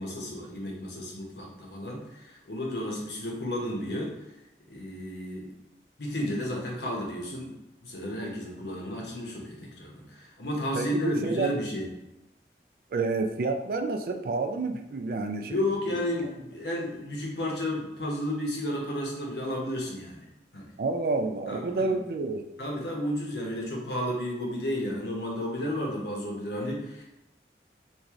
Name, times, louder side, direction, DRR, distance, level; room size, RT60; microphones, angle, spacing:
voice 1, 0.0-4.1 4.7-5.5 6.0-7.5 7.8-11.9 15.5-20.2 20.5-20.7 21.5-22.0 22.6-27.0, left 1 dB, 75° left, -1 dB, 0.9 m, -32 dB
voice 2, 10.7-11.5 12.9-15.7 20.8-22.4, right 3 dB, 55° right, 5 dB, 0.3 m, -29 dB
3.1 x 2.6 x 3.6 m, 0.96 s
head